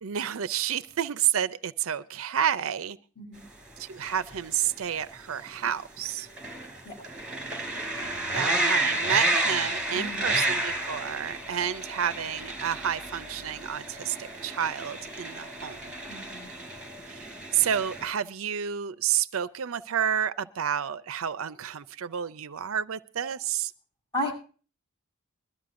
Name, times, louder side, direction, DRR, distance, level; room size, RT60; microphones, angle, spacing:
voice 1, 0.0-3.0 3.8-6.3 8.3-15.8 17.1-23.7, right 9 dB, 70° right, 0.5 m, -30 dB
sound 1, 3.7-4.7 5.5-5.7 6.0-18.1, right 1 dB, 5° right, 4.1 m, -31 dB
voice 2, 9.9-10.3 16.1-16.5 24.1-24.3, equal, 20° left, 7.0 m, -33 dB
22.0 x 13.0 x 2.5 m
head